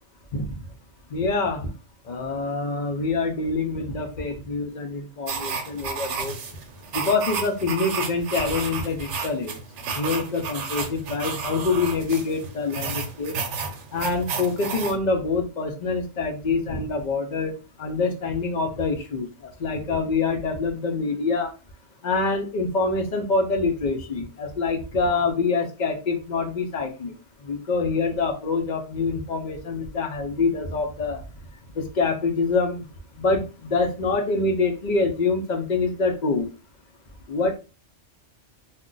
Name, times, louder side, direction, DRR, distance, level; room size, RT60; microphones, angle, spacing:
voice 1, 1.1-1.7 2.1-6.4 6.9-9.6 9.9-13.3 13.9-17.5 17.8-19.3 19.6-21.5 22.0-27.1 27.4-31.2 31.8-32.8 33.2-36.5 37.3-37.6, left 3 dB, 50° left, 4 dB, 0.6 m, -25 dB
sound 1, 5.3-15.0, right 5 dB, 80° right, 0.9 m, -32 dB
2.4 x 2.2 x 3.7 m, 0.32 s
omnidirectional pair, 1.2 m